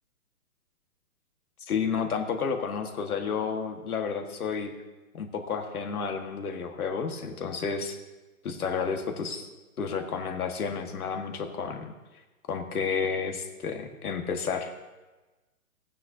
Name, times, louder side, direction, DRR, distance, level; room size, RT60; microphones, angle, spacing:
voice 1, 1.7-4.7 5.1-8.0 8.4-9.5 9.8-11.9 12.5-14.7, left 6 dB, 80° left, 5 dB, 1.6 m, -31 dB
15.5 x 9.4 x 2.7 m, 1.2 s
hypercardioid pair, 150°, 44 cm